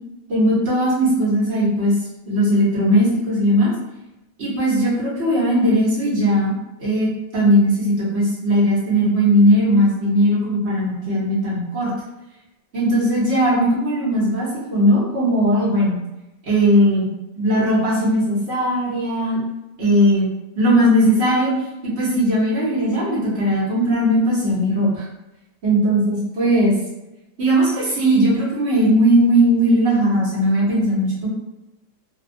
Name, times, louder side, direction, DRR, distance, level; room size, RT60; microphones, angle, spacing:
voice 1, 0.3-1.9 2.3-3.7 4.4-6.5 6.8-11.9 12.7-16.0 16.5-19.4 19.8-20.3 20.6-21.5 22.0-25.0 25.6-26.8 27.4-31.3, equal, 50° right, -6 dB, 0.9 m, -18 dB
2.8 x 2.1 x 2.6 m, 0.96 s
omnidirectional pair, 1.8 m